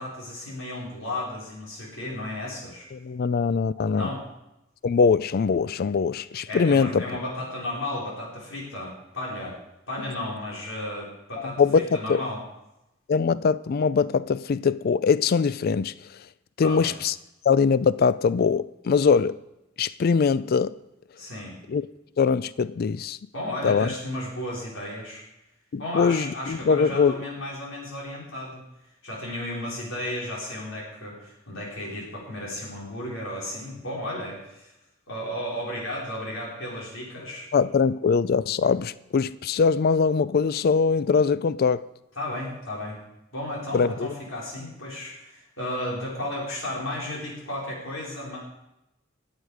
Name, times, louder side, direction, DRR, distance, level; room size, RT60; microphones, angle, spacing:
voice 1, 0.0-2.9 3.9-4.2 6.5-9.6 9.9-12.4 16.6-17.0 21.2-21.6 23.3-25.2 25.8-28.6 29.0-34.7 35.1-37.5 42.2-43.0 43.3-48.4, left 1 dB, 85° left, 4.6 m, -34 dB
voice 2, 2.9-4.1 4.8-7.0 11.4-12.2 13.1-15.9 16.6-17.2 17.4-19.4 19.8-20.7 21.7-21.8 22.2-23.2 23.6-23.9 25.7-27.2 37.5-41.8 43.7-44.1, left 5 dB, 50° left, 0.4 m, -22 dB
19.5 x 8.2 x 4.9 m
head